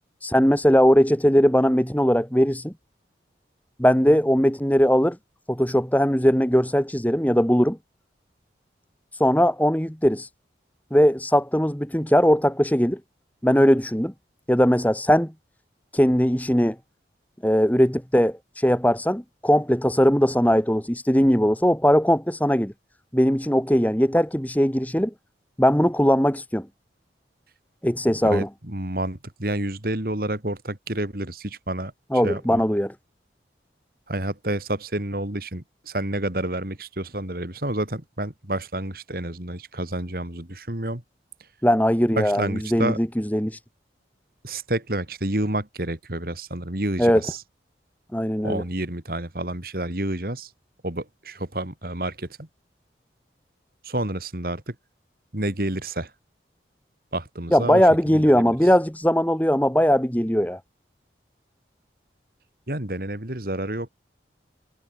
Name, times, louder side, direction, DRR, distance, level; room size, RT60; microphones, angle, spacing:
voice 1, 0.2-2.7 3.8-5.2 5.5-7.8 9.2-10.3 10.9-13.0 13.4-14.1 14.5-15.3 15.9-16.8 17.4-22.7 23.1-25.1 25.6-26.7 27.8-28.5 32.1-32.9 41.6-43.5 47.0-47.2 48.1-48.6 57.5-60.6, equal, 10° left, 2.1 m, -20 dB
voice 2, 28.1-32.7 34.1-41.0 42.1-43.0 44.4-47.4 48.4-50.5 50.8-52.5 53.8-54.8 55.3-56.1 57.1-58.5 62.7-63.9, right 1 dB, 50° right, 2.7 m, -29 dB
head